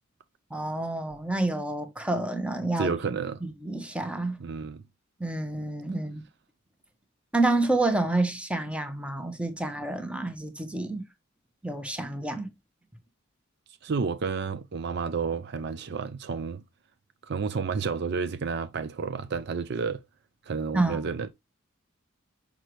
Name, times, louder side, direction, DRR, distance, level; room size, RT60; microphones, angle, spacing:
voice 1, 0.5-2.9 3.4-4.4 5.2-6.2 7.3-11.0 11.6-12.5 20.7-21.1, right 2 dB, 5° right, 0.9 m, -28 dB
voice 2, 2.8-3.4 4.4-4.8 13.8-16.6 17.2-20.0 20.4-21.3, right 5 dB, 55° right, 0.4 m, -31 dB
6.3 x 5.2 x 3.0 m
head